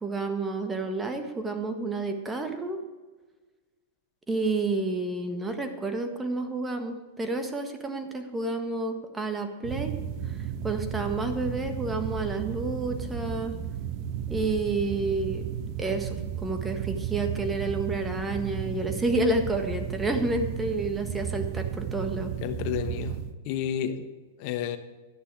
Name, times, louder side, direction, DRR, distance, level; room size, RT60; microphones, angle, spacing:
voice 1, 0.0-2.8 4.3-9.9 10.2-10.4 10.6-13.5 14.3-15.5 15.8-22.3, right 2 dB, 15° right, 6 dB, 1.5 m, -30 dB
sound 1, 9.6-23.3, right 9 dB, 50° right, 1.0 m, -34 dB
voice 2, 22.4-23.2 23.4-24.1 24.4-24.8, left 9 dB, 50° left, 9 dB, 1.0 m, -30 dB
12.0 x 10.0 x 4.7 m, 1.3 s
hypercardioid pair, 110°, 0 cm